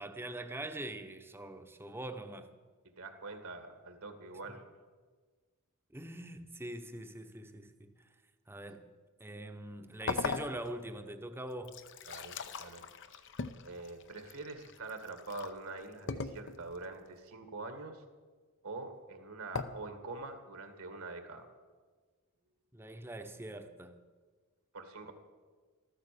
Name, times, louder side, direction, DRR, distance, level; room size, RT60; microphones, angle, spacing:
voice 1, 0.0-2.5 5.9-8.1 8.5-8.8 9.2-11.8 22.7-24.0, right 1 dB, 10° right, 0.9 m, -43 dB
voice 2, 3.0-4.6 12.1-12.8 13.6-18.0 18.6-21.5 24.7-25.1, right 3 dB, 70° right, 2.0 m, -45 dB
sound 1, 10.1-11.0 11.5-15.5 16.1-16.8 19.6-19.7, left 4 dB, 55° left, 0.8 m, -39 dB
14.0 x 14.0 x 6.9 m
head